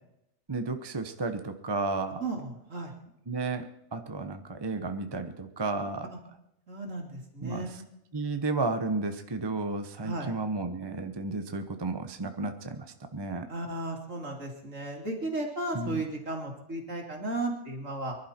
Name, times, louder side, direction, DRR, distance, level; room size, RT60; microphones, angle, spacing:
voice 1, 0.5-2.2 3.3-6.1 7.4-7.6 8.1-13.5 15.7-16.0, right 3 dB, 20° right, 7 dB, 0.9 m, -33 dB
voice 2, 2.2-2.9 6.7-7.9 10.0-10.3 13.5-18.2, right 2 dB, 65° right, 1 dB, 3.1 m, -35 dB
24.0 x 11.5 x 4.4 m, 0.84 s
omnidirectional pair, 1.4 m